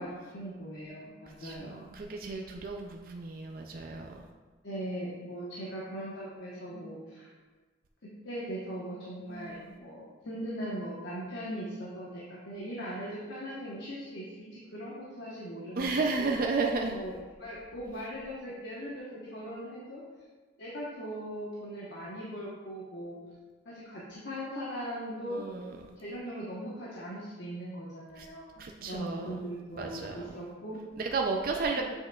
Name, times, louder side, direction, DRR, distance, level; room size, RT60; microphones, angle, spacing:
voice 1, 0.0-2.0 4.6-7.3 8.2-16.3 16.9-17.1 17.4-20.0 20.6-23.2 23.6-25.4 26.0-30.8 31.8-31.9, equal, 65° left, -6 dB, 1.1 m, -39 dB
voice 2, 1.4-4.1 9.3-9.8 15.8-16.9 25.3-25.8 28.2-28.3 28.6-29.4 29.8-30.2 31.0-31.8, right 3 dB, 50° right, 2 dB, 0.4 m, -33 dB
7.7 x 5.8 x 2.3 m, 1.3 s
head